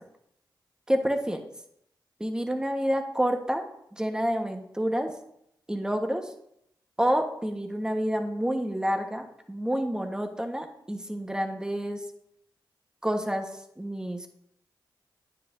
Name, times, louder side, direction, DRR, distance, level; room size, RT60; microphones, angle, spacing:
voice 1, 0.9-1.4 2.2-3.6 3.9-5.1 5.7-6.3 7.0-12.0 13.0-13.5 13.8-14.3, equal, 10° right, 4 dB, 1.3 m, -28 dB
9.9 x 9.5 x 2.7 m, 0.75 s
cardioid pair, 60°, 8 cm